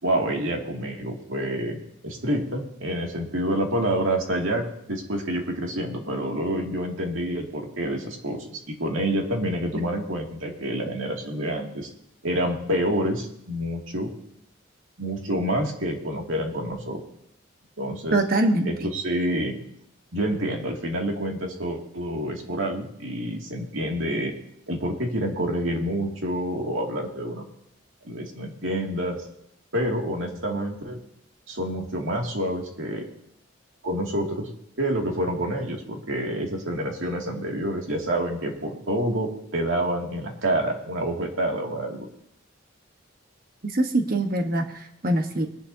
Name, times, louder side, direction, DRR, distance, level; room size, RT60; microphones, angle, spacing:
voice 1, 0.0-11.9 12.2-14.1 15.0-17.0 17.8-18.2 18.6-19.6 20.1-24.3 24.7-27.4 28.0-29.3 29.7-31.0 31.5-33.0 33.8-34.5 34.8-42.1, right 1 dB, 80° right, 0 dB, 2.4 m, -28 dB
voice 2, 18.1-18.7 43.6-45.5, right 2 dB, 45° right, 5 dB, 1.2 m, -23 dB
21.5 x 11.0 x 2.8 m, 0.77 s
head